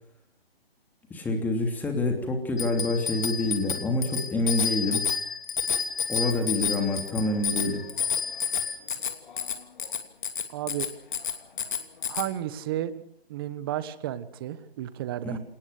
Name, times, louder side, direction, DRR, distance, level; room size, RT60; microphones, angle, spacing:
voice 1, 1.1-5.0 6.1-7.8 15.2-15.4, left 2 dB, 5° left, 4 dB, 3.0 m, -27 dB
Bicycle bell, 2.6-12.3, left 7 dB, 50° left, 3.0 m, -30 dB
voice 2, 10.5-10.9 12.1-13.0 13.3-15.4, right 12 dB, 25° right, 14 dB, 1.2 m, -32 dB
27.5 x 19.5 x 6.7 m, 0.64 s
hypercardioid pair, 155°, 30 cm